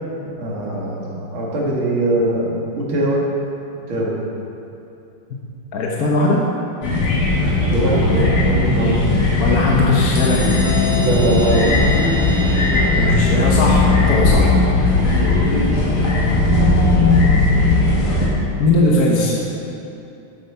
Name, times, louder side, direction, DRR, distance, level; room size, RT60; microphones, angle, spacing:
voice 1, 0.4-3.2 3.9-4.1 7.7-9.0 11.0-11.7, right 1 dB, 70° right, -4 dB, 2.7 m, -21 dB
voice 2, 5.7-6.5 9.4-10.6 12.9-14.5 18.6-19.3, left 2 dB, 50° left, -2 dB, 1.3 m, -18 dB
sound 1, 6.8-18.3, left 2 dB, 70° left, 3.1 m, -17 dB
sound 2, 10.1-13.7, left 3 dB, 85° left, 1.9 m, -28 dB
12.0 x 7.8 x 5.7 m, 2.7 s
omnidirectional pair, 2.4 m